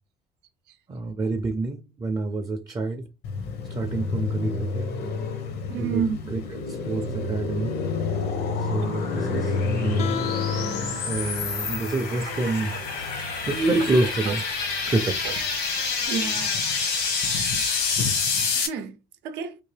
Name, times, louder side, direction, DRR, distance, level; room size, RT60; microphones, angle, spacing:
voice 1, 0.9-3.1 3.7-4.9 5.8-6.4 6.7-7.7 8.6-10.1 11.1-12.7 13.5-14.4 14.9-15.2, right 2 dB, 20° right, 0.4 m, -27 dB
Car passing by, 3.2-15.7 16.0-18.5, left 4 dB, 75° left, 0.8 m, -31 dB
voice 2, 5.7-6.2 11.2-11.4 12.3-12.8 13.8-13.9 14.2-14.3 15.2-15.4 16.1-16.5 17.3-17.5 18.5-19.0 19.2-19.6, right 7 dB, 85° right, 0.6 m, -31 dB
sound 1, 7.3-18.7, left 5 dB, 90° left, 1.3 m, -29 dB
Guitar, 10.0-15.7, left 10 dB, 40° left, 0.4 m, -37 dB
3.7 x 2.8 x 3.2 m
cardioid pair, 110°, 17 cm